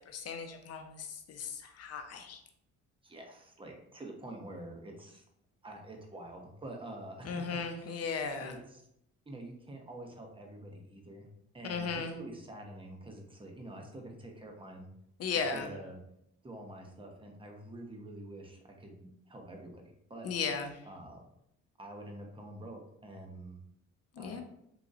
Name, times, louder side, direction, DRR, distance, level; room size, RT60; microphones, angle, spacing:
voice 1, 0.1-2.4 7.2-8.6 11.6-12.2 15.2-15.7 20.2-20.7 24.2-24.4, left 5 dB, 55° left, 6 dB, 0.7 m, -36 dB
voice 2, 3.0-5.2 5.6-8.0 8.4-8.8 9.3-11.3 11.5-14.9 15.3-16.0 16.4-20.3 20.8-21.2 21.8-23.6 24.2-24.4, right 1 dB, 15° right, 2 dB, 0.8 m, -47 dB
3.8 x 2.9 x 2.5 m, 0.77 s
cardioid pair, 90°, 30 cm